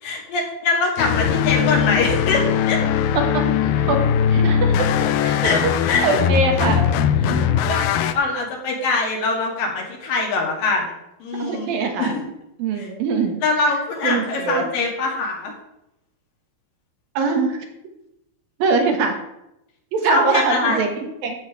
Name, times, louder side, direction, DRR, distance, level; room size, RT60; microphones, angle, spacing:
voice 1, 0.0-2.8 5.4-6.1 6.6-6.8 7.7-11.0 11.2-12.2 12.8-12.9 13.4-15.5 20.1-20.8, left 3 dB, 65° left, 0 dB, 3.6 m, -23 dB
sound 1, 1.0-8.1, left 8 dB, 85° left, 2.5 m, -20 dB
voice 2, 3.2-4.0 4.3-4.9 5.2-5.7 6.0-6.9 7.2-7.5 11.4-12.1 12.6-13.4 14.0-14.7 17.2-17.6 18.6-19.2 19.9-21.3, right 4 dB, 70° right, 4 dB, 3.1 m, -22 dB
13.0 x 8.1 x 4.9 m, 0.85 s
omnidirectional pair, 4.5 m